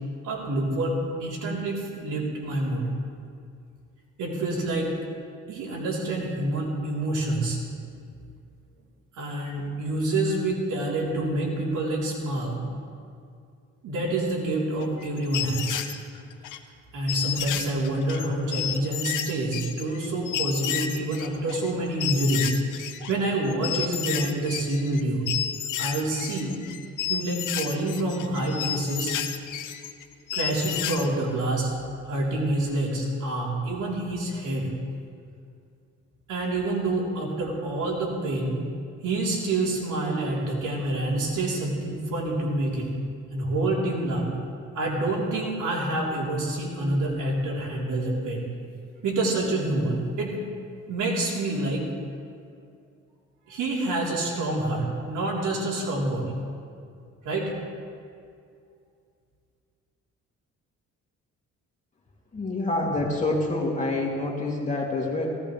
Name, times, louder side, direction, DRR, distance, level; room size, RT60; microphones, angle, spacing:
voice 1, 0.2-0.9 1.2-2.9 4.2-4.9 5.5-7.6 9.1-12.6 13.8-15.8 16.9-22.5 22.8-25.4 25.8-26.6 27.1-29.1 30.3-31.7 32.0-34.7 36.3-38.6 39.0-42.9 43.3-44.3 44.7-48.5 49.0-50.4 50.9-51.9 53.5-56.3 57.2-57.5, right 2 dB, 80° right, -4 dB, 3.8 m, -27 dB
sound 1, 14.8-16.6 17.1-23.1 23.5-25.0 25.3-31.1, left 10 dB, 90° left, 0.9 m, -31 dB
voice 2, 62.3-65.3, left 2 dB, 25° left, -3 dB, 3.0 m, -27 dB
17.0 x 17.0 x 3.4 m, 2.3 s
cardioid pair, 90°, 30 cm